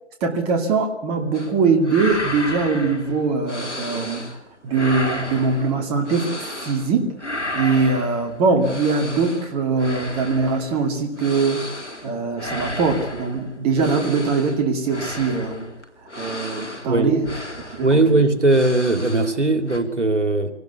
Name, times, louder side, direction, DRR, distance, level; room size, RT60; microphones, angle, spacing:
voice 1, 0.2-4.3 4.6-7.1 7.5-11.6 12.0-15.7 16.2-17.3 17.8-18.0, right 4 dB, 15° right, 4 dB, 2.4 m, -22 dB
sound 1, 1.3-1.6 1.8-4.4 4.7-6.9 7.2-19.4 19.7-19.8, left 1 dB, 90° left, 3.8 m, -33 dB
voice 2, 17.8-20.5, right 2 dB, 85° right, 9 dB, 3.1 m, -19 dB
24.5 x 18.5 x 8.3 m, 0.75 s
figure-of-eight pair, 145°, 35 cm